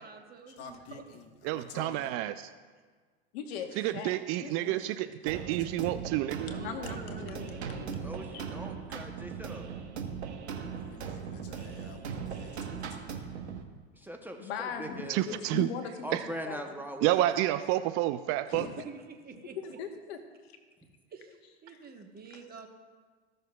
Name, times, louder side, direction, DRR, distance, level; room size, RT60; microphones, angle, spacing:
voice 1, 0.0-1.0 6.4-8.0 18.5-19.6 21.1-22.7, right 5 dB, 30° right, 4 dB, 1.2 m, -48 dB
voice 2, 0.6-2.2 5.6-5.9 10.8-13.1, left 5 dB, 45° left, 4 dB, 1.4 m, -50 dB
voice 3, 1.4-2.5 3.8-6.6 15.1-15.7 16.1-16.2 17.0-18.7, right 15 dB, 45° right, 12 dB, 0.4 m, -29 dB
voice 4, 3.3-5.0 6.5-8.4 8.9-9.1 14.4-16.7 18.5-18.8 19.6-20.5 21.7-21.8, left 6 dB, 65° left, 5 dB, 1.2 m, -40 dB
sound 1, 5.3-13.6, right 6 dB, 80° right, 1.1 m, -39 dB
voice 5, 8.0-9.7 13.9-15.4 16.0-17.2, right 1 dB, 5° right, 3 dB, 0.7 m, -41 dB
14.5 x 6.4 x 2.3 m, 1.5 s
hypercardioid pair, 90°, 33 cm